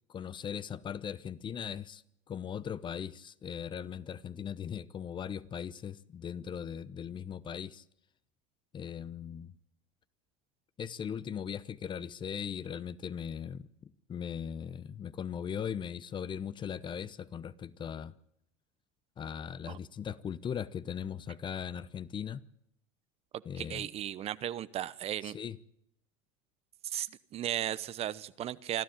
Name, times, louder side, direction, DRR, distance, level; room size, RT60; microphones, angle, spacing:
voice 1, 0.1-2.0 2.3-7.8 8.7-9.5 10.8-18.1 19.2-22.4 23.4-23.9 25.2-25.6, left 8 dB, 30° left, 0.9 m, -39 dB
voice 2, 23.6-25.4 26.8-28.8, right 11 dB, 40° right, 0.9 m, -36 dB
26.0 x 13.0 x 9.0 m
hypercardioid pair, 85°, 16 cm